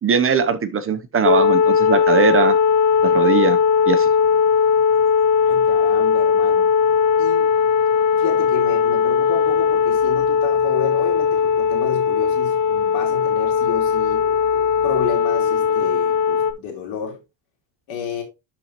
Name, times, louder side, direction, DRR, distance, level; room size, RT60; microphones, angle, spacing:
voice 1, 0.0-2.6 3.0-3.6 3.9-4.1, right 6 dB, 30° right, 0.8 m, -20 dB
sound 1, 1.2-16.5, left 6 dB, 45° left, 0.8 m, -18 dB
voice 2, 5.4-6.7 7.2-7.5 8.1-14.3 14.8-17.2 17.9-18.2, left 8 dB, 80° left, 3.5 m, -31 dB
11.0 x 4.2 x 3.0 m
cardioid pair, 140°, 45 cm